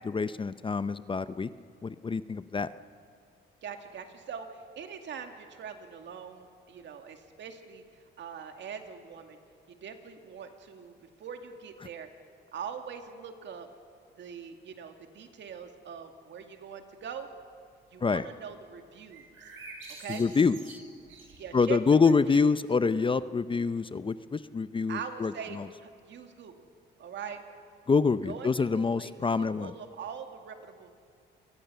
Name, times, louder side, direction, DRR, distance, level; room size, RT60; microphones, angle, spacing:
voice 1, 0.1-1.5 1.8-2.7 18.0-18.2 20.1-20.8 21.5-25.3 27.9-29.7, left 4 dB, 25° left, 14 dB, 0.6 m, -26 dB
voice 2, 3.6-9.4 9.7-12.1 12.5-13.7 14.2-17.3 17.9-19.5 20.0-20.3 21.4-21.8 22.0-22.4 24.9-26.6 27.0-27.4 28.2-30.9, right 7 dB, 65° right, 6 dB, 2.2 m, -42 dB
sound 1, 19.1-21.8, right 3 dB, 80° right, 6.3 m, -48 dB
27.5 x 19.5 x 6.9 m, 2.3 s
cardioid pair, 90°, 20 cm